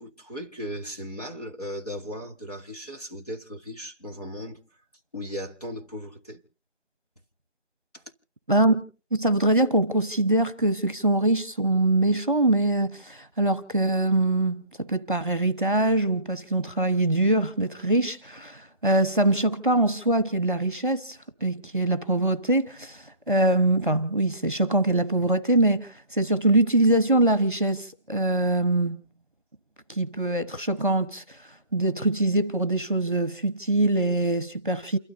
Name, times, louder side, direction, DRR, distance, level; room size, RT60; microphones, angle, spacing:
voice 1, 0.0-4.6 5.1-6.4 7.9-8.0, equal, 35° left, 1.8 m, -37 dB
voice 2, 8.5-8.8 9.1-29.0 29.9-31.2 31.7-35.0, right 2 dB, 45° right, 1.2 m, -23 dB
29.0 x 13.0 x 2.7 m
figure-of-eight pair, 180°, 36 cm